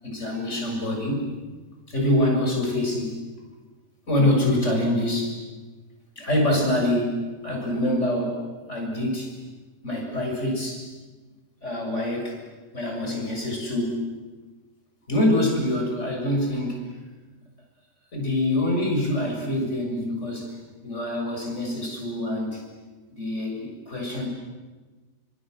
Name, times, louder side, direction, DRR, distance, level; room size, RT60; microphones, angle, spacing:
voice 1, 0.0-1.2 1.9-3.1 4.1-5.4 6.2-8.4 8.7-9.3 9.8-10.8 11.6-12.4 12.7-14.0 15.1-16.9 18.1-20.6 20.8-22.7 23.1-24.3, left 1 dB, 45° left, 0 dB, 7.3 m, -25 dB
29.5 x 25.5 x 8.0 m, 1.3 s
omnidirectional pair, 1.8 m